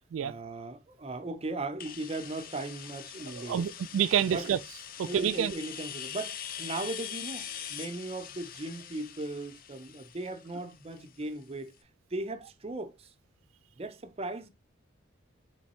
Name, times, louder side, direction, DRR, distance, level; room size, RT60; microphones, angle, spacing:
voice 1, 0.2-3.7 4.2-4.5 5.0-11.7 12.1-13.1 13.8-14.5, right 2 dB, 30° right, 0.5 m, -38 dB
sound 1, 1.8-11.4, left 9 dB, 45° left, 0.5 m, -43 dB
voice 2, 3.3-4.6 5.0-5.5, right 9 dB, 85° right, 0.3 m, -28 dB
3.6 x 3.4 x 4.2 m
head